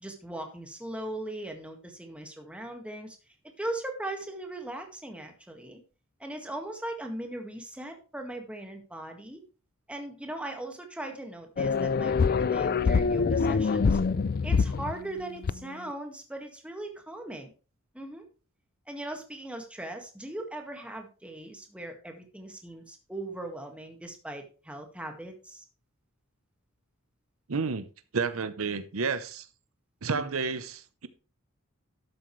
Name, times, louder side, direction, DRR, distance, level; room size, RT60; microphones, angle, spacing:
voice 1, 0.0-3.2 3.6-5.8 6.2-9.4 9.9-14.0 14.4-17.5 17.9-18.2 18.9-25.7, right 1 dB, 5° right, 1.8 m, -39 dB
sound 1, 11.6-15.0 15.4-15.5, left 5 dB, 45° left, 0.4 m, -25 dB
voice 2, 27.5-27.9 28.1-29.5 30.0-31.1, right 4 dB, 80° right, 0.8 m, -30 dB
12.5 x 7.7 x 3.2 m
head